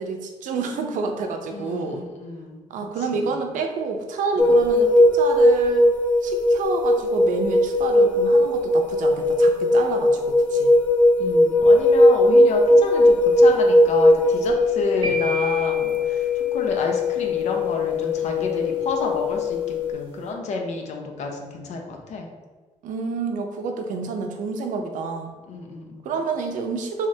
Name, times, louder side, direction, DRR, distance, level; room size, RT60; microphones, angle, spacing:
voice 1, 0.0-2.0 2.7-5.9 6.2-10.7 22.8-25.3 26.0-27.1, right 4 dB, 80° right, 4 dB, 0.5 m, -29 dB
voice 2, 1.5-2.7 3.1-3.3 11.2-22.3 25.5-26.1, left 3 dB, 65° left, 2 dB, 0.6 m, -30 dB
sound 1, 4.4-19.9, left 1 dB, 10° left, 0.4 m, -19 dB
sound 2, 15.0-17.1, right 3 dB, 40° right, 0.9 m, -33 dB
3.6 x 3.2 x 2.7 m, 1.3 s
cardioid pair, 165°, 13 cm